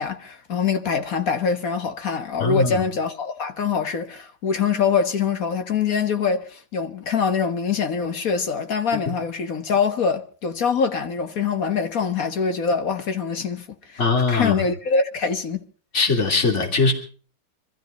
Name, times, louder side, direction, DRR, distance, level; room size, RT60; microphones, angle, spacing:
voice 1, 0.0-15.6, left 5 dB, 45° left, 1.4 m, -24 dB
voice 2, 2.4-2.8 14.0-14.6 15.9-16.9, left 4 dB, 30° left, 3.1 m, -20 dB
25.5 x 14.0 x 3.8 m
omnidirectional pair, 2.4 m